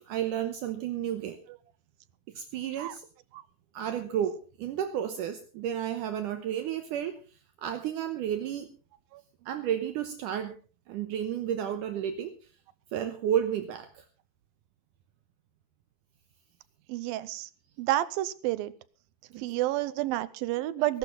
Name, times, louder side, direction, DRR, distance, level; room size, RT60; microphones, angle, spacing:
voice 1, 0.0-1.4 2.3-3.0 3.7-7.2 7.6-8.7 9.5-10.5 10.9-12.3 12.9-14.1 19.3-19.5, right 10 dB, 70° right, 8 dB, 2.4 m, -32 dB
voice 2, 16.9-17.5 17.8-18.7 19.4-21.0, right 15 dB, 90° right, 17 dB, 2.6 m, -30 dB
20.5 x 12.0 x 4.0 m, 0.37 s
omnidirectional pair, 4.1 m